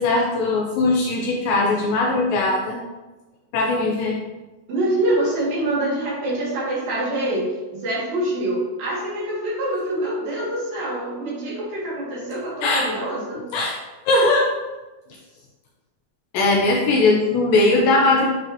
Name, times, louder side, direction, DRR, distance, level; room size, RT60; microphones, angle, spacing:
voice 1, 0.0-2.8 3.5-4.2 12.6-12.8 13.5-13.8 14.1-14.5 16.3-18.3, left 2 dB, 80° left, -1 dB, 2.1 m, -19 dB
voice 2, 4.7-13.4, right 1 dB, 65° right, -8 dB, 3.6 m, -25 dB
9.2 x 4.0 x 2.8 m, 1.1 s
omnidirectional pair, 4.6 m